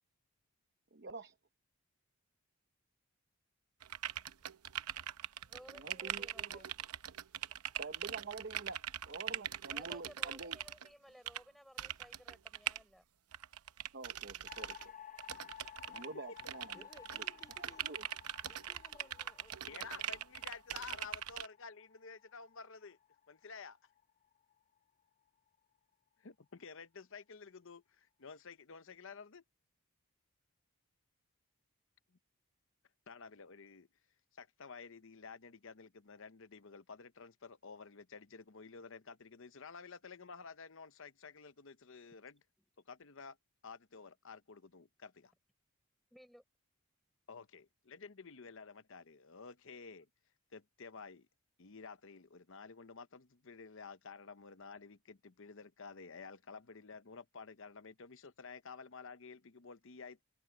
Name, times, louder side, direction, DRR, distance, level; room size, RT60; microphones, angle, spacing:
voice 1, 0.9-1.3 5.7-6.7 7.8-10.6 13.9-14.9 15.9-16.9 17.1-17.2 17.5-18.0, right 3 dB, 50° right, 0.9 m, -48 dB
sound 1, 3.8-10.9 11.3-11.4 11.8-12.8 13.3-14.9 15.2-16.1 16.4-21.5, right 11 dB, 90° right, 0.8 m, -42 dB
voice 2, 5.5-6.7 9.7-13.0 46.1-46.4, equal, ahead, 5.9 m, -58 dB
sound 2, 14.5-24.8, left 9 dB, 35° left, 0.7 m, -56 dB
voice 3, 16.7-19.9, left 1 dB, 15° left, 4.8 m, -61 dB
voice 4, 19.7-23.0 23.3-23.8 26.2-29.4 33.1-33.9 34.3-42.4 42.9-43.4 43.6-45.3 47.3-50.1 50.5-51.3 51.6-60.2, left 5 dB, 60° left, 0.8 m, -52 dB
head